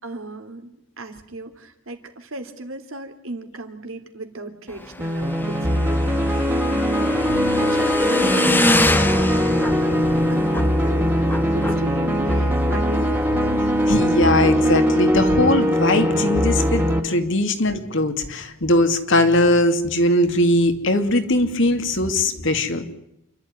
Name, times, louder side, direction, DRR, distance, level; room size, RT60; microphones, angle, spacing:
voice 1, 0.0-6.5 6.9-13.6, right 2 dB, 80° right, 6 dB, 3.1 m, -36 dB
Motorcycle / Engine, 4.7-13.9, left 1 dB, 10° left, 1.3 m, -26 dB
sound 1, 5.0-17.0, equal, 10° right, 2.5 m, -20 dB
voice 2, 13.9-22.8, left 1 dB, 65° left, 7 dB, 2.5 m, -20 dB
28.5 x 12.0 x 9.6 m, 0.85 s
head